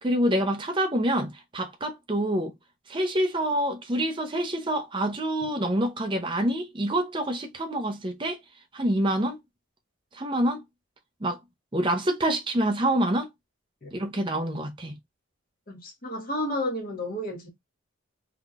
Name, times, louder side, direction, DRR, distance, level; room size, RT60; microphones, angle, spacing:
voice 1, 0.0-2.5 2.9-8.4 8.7-9.4 10.1-10.6 11.2-11.4 11.7-13.3 13.9-15.0, right 1 dB, 25° right, 0.6 m, -26 dB
voice 2, 15.7-17.5, left 1 dB, 40° left, 1.3 m, -31 dB
3.6 x 2.9 x 2.4 m
head